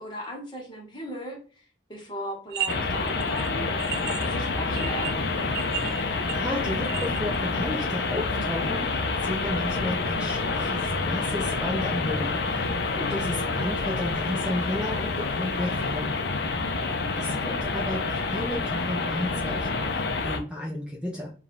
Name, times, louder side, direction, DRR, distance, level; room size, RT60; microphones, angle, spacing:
voice 1, 0.0-5.2 16.8-17.7, equal, 25° left, 0 dB, 1.0 m, -38 dB
sound 1, 2.5-2.7 3.0-7.4, right 9 dB, 55° right, 0.4 m, -34 dB
sound 2, 2.7-20.4, left 3 dB, 60° left, 0.5 m, -28 dB
sound 3, 4.8-16.5, equal, 35° right, 1.1 m, -47 dB
voice 2, 5.9-16.2 17.2-21.3, left 1 dB, 5° right, -3 dB, 0.5 m, -33 dB
3.5 x 2.3 x 4.1 m, 0.38 s
head